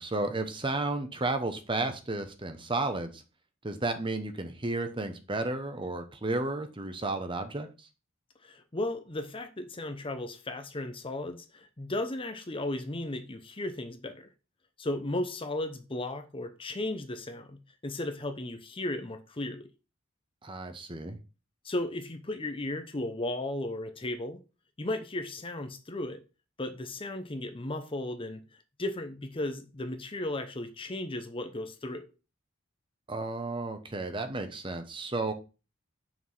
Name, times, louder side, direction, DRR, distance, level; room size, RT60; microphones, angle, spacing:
voice 1, 0.0-3.2 3.6-7.9 20.4-21.2 33.1-35.3, right 2 dB, 25° right, 0.8 m, -33 dB
voice 2, 8.4-14.3 14.8-19.7 21.6-24.4 24.8-26.2 26.6-28.4 28.8-32.1, left 1 dB, 25° left, 0.7 m, -35 dB
6.0 x 4.7 x 5.6 m
head